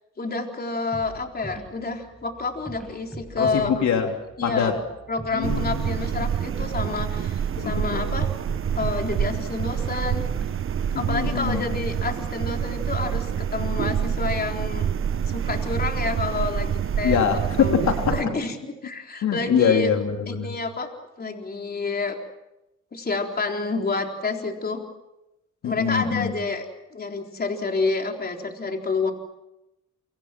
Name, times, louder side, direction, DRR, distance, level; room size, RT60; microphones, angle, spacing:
voice 1, 0.2-3.7 4.4-4.7 5.1-8.3 8.7-10.2 11.0-14.9 15.3-17.8 18.1-19.9 20.3-20.9 21.2-22.2 22.9-24.8 25.6-26.6 26.9-29.1, left 3 dB, 30° left, 3 dB, 4.0 m, -29 dB
sound 1, 0.9-11.0, right 1 dB, ahead, 7.9 m, -42 dB
voice 2, 3.4-4.1 4.4-4.8 5.3-6.3 7.5-8.2 10.9-11.7 17.0-18.1 19.2-20.5 25.6-26.3, left 7 dB, 70° left, 3 dB, 3.3 m, -24 dB
sound 2, 5.4-18.2, right 8 dB, 45° right, 0.9 m, -27 dB
28.0 x 25.5 x 6.1 m, 0.92 s
cardioid pair, 90°, 30 cm